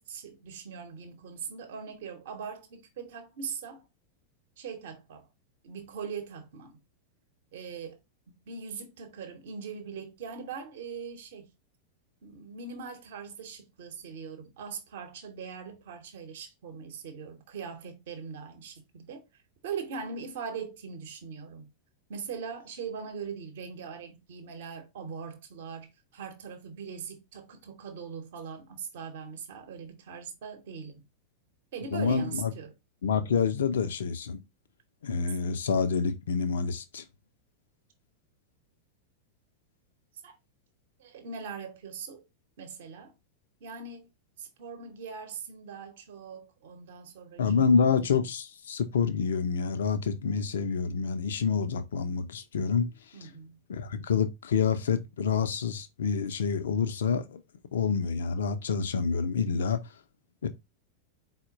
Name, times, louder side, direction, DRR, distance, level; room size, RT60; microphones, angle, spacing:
voice 1, 0.0-3.9 4.6-5.3 5.6-6.8 7.5-8.0 8.3-11.5 12.2-19.2 19.6-21.7 22.1-31.0 31.7-32.8 40.2-40.3 41.0-42.3 42.6-43.1 43.6-44.1 44.4-47.9 53.1-53.6, right 6 dB, 55° right, 0.8 m, -41 dB
voice 2, 31.9-32.5 33.0-34.4 35.0-37.0 47.4-52.9 53.7-57.4 57.7-59.8 60.4-60.5, left 6 dB, 65° left, 0.5 m, -27 dB
4.3 x 2.1 x 3.7 m
figure-of-eight pair, 90°, 0 cm